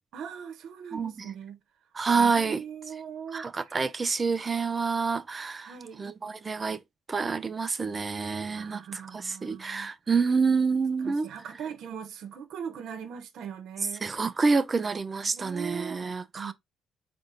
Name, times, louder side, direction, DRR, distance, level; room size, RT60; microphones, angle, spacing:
voice 1, 0.1-1.6 2.1-3.9 5.6-6.1 8.5-10.2 11.0-14.1 15.2-16.5, right 7 dB, 75° right, 0.9 m, -40 dB
voice 2, 0.9-1.3 1.9-2.6 3.3-5.7 6.0-6.8 7.1-11.3 14.0-16.5, right 4 dB, 30° right, 0.5 m, -28 dB
4.1 x 2.7 x 3.8 m
cardioid pair, 90°, 0 cm